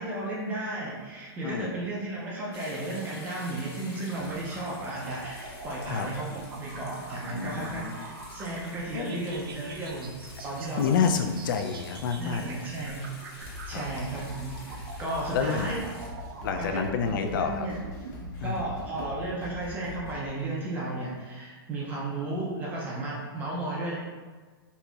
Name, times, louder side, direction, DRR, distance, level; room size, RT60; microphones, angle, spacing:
voice 1, 0.0-10.2 10.4-10.9 12.2-15.8 16.6-17.8 18.4-23.9, right 2 dB, 15° right, -4 dB, 0.4 m, -34 dB
sound 1, 2.5-16.1, left 2 dB, 90° left, 1.4 m, -49 dB
sound 2, 4.1-19.1, right 3 dB, 65° right, 0.5 m, -45 dB
voice 2, 7.2-8.0 8.9-9.2 10.8-12.6 13.7-13.8 15.3-15.7 16.4-17.7 18.4-18.6, left 6 dB, 55° left, 6 dB, 0.4 m, -29 dB
sound 3, 13.4-20.3, left 1 dB, 20° left, 0.7 m, -42 dB
4.1 x 2.8 x 2.3 m, 1.4 s
hypercardioid pair, 165°, 13 cm